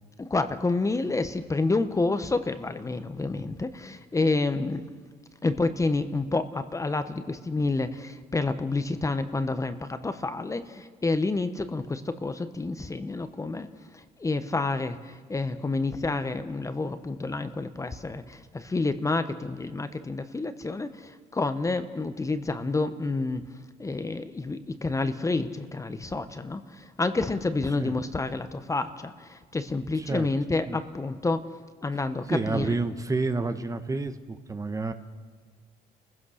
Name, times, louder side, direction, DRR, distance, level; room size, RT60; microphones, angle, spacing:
voice 1, 0.2-4.8 5.4-13.7 13.9-23.4 23.8-31.4 31.8-32.8, left 3 dB, 20° left, 10 dB, 1.0 m, -29 dB
voice 2, 29.9-30.3 30.6-30.8 32.3-34.9, right 3 dB, 20° right, 9 dB, 1.1 m, -29 dB
29.0 x 16.0 x 6.4 m, 1.5 s
cardioid pair, 110°, 17 cm